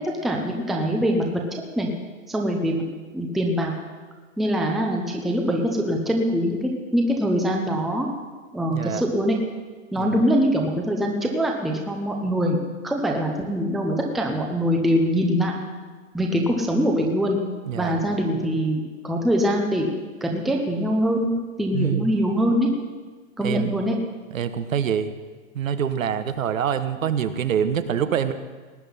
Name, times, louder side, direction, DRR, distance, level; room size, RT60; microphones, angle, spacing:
voice 1, 0.2-1.2 1.8-1.9 2.3-2.8 3.1-3.7 4.4-8.1 8.5-9.4 9.9-15.5 16.1-17.4 17.7-19.9 20.2-21.3 21.6-22.7 23.4-24.0, equal, ahead, 1 dB, 0.6 m, -23 dB
voice 2, 17.7-18.0 21.7-22.1 23.4-23.7 24.3-25.1 25.5-28.3, right 8 dB, 75° right, 11 dB, 1.3 m, -25 dB
18.5 x 9.4 x 5.6 m, 1.4 s
hypercardioid pair, 150°, 40 cm